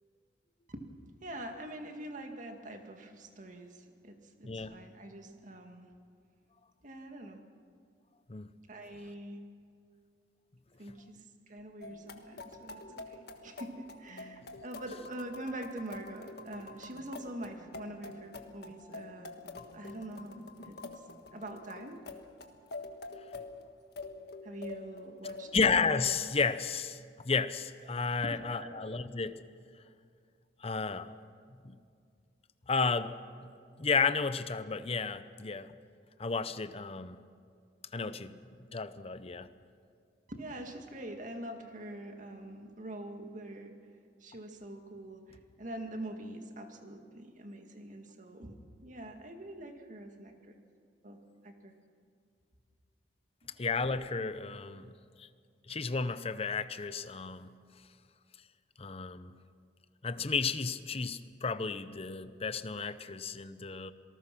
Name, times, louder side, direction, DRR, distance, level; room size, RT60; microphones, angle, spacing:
voice 1, 1.2-5.9 6.8-7.4 8.7-9.5 10.8-12.8 13.1-19.3 19.7-20.4 20.6-20.9 21.3-22.0 24.4-25.7 27.8-29.4 31.0-31.2 40.3-43.8 44.2-50.6 51.0-51.2 51.4-51.7 53.4-53.5 54.4-54.5, right 1 dB, 45° right, 2.1 m, -44 dB
voice 2, 4.4-4.7 8.3-8.5 25.5-27.0 27.2-29.4 30.6-31.1 31.6-31.8 32.7-33.2 33.8-35.7 36.2-37.2 37.9-38.4 38.7-39.5 53.6-54.9 55.2-55.3 55.7-57.5 58.8-59.3 60.0-63.9, left 4 dB, 35° left, 0.8 m, -32 dB
sound 1, 11.8-26.2, left 3 dB, 65° left, 1.6 m, -47 dB
26.5 x 19.0 x 6.0 m
head